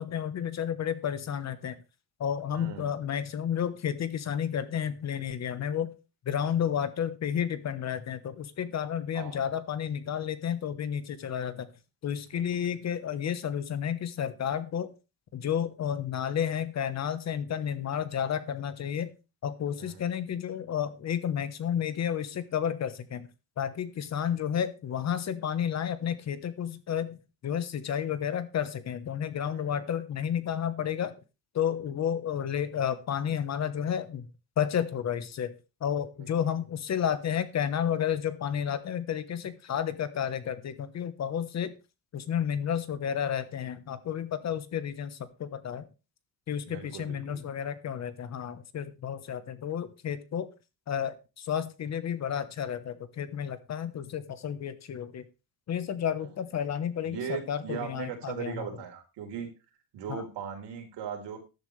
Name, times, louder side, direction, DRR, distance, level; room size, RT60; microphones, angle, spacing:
voice 1, 0.0-1.8 2.2-5.9 6.2-11.7 12.0-14.9 15.3-19.1 19.4-23.3 23.6-27.2 27.4-31.1 31.5-34.3 34.6-35.5 35.8-41.7 42.1-45.9 46.5-50.5 50.9-55.3 55.7-58.7 60.1-60.2, left 8 dB, 40° left, 13 dB, 1.1 m, -31 dB
voice 2, 2.5-2.9 9.1-9.4 12.3-12.7 19.8-20.0 29.5-29.9 46.7-47.4 56.2-56.3 57.0-59.5 59.9-61.4, right 7 dB, 70° right, 4 dB, 3.9 m, -39 dB
14.0 x 11.0 x 3.3 m, 0.29 s
cardioid pair, 170°, 43 cm